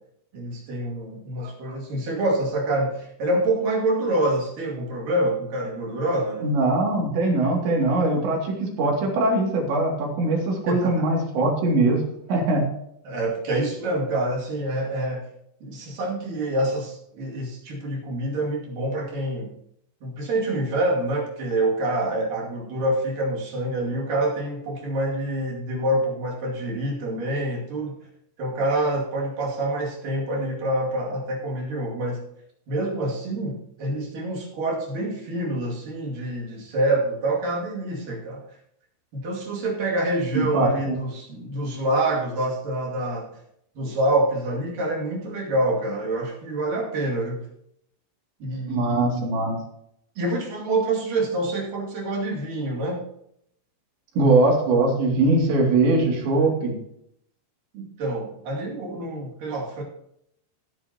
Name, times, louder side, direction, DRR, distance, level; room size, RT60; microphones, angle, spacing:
voice 1, 0.3-6.5 10.7-11.1 13.1-15.3 15.6-19.5 20.0-28.0 28.4-32.2 32.7-38.5 39.1-43.3 43.8-47.4 48.4-49.3 50.2-53.0 57.7-59.8, right 1 dB, 55° right, -2 dB, 3.7 m, -26 dB
voice 2, 6.4-12.0 12.3-12.7 40.3-41.0 48.7-49.5 54.2-56.7, right 2 dB, 90° right, -1 dB, 4.8 m, -21 dB
17.0 x 8.9 x 2.9 m, 0.74 s
omnidirectional pair, 5.0 m